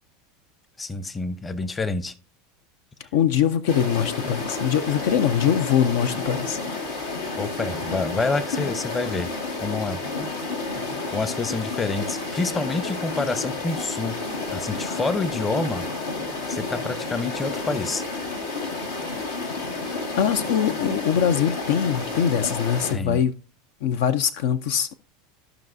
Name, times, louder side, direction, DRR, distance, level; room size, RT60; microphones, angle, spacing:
voice 1, 0.8-2.1 7.4-9.3 9.6-10.0 11.1-14.2 14.5-15.8 16.5-18.0 22.9-23.2, left 3 dB, 20° left, 0.8 m, -28 dB
voice 2, 3.1-6.6 20.2-23.3 23.8-24.9, left 9 dB, 70° left, 0.5 m, -22 dB
sound 1, 3.7-22.9, left 3 dB, 90° left, 1.9 m, -30 dB
14.5 x 5.4 x 2.6 m
hypercardioid pair, 90°, 0 cm